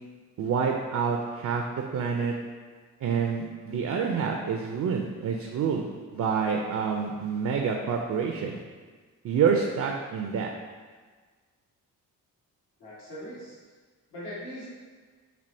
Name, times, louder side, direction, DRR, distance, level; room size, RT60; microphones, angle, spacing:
voice 1, 0.4-2.3 3.0-5.9 6.1-8.6 9.2-10.5, right 6 dB, 50° right, 2 dB, 0.4 m, -27 dB
voice 2, 12.8-13.6 14.1-14.7, equal, 70° left, -9 dB, 1.4 m, -40 dB
4.3 x 2.7 x 2.6 m, 1.5 s
supercardioid pair, 50°, 39 cm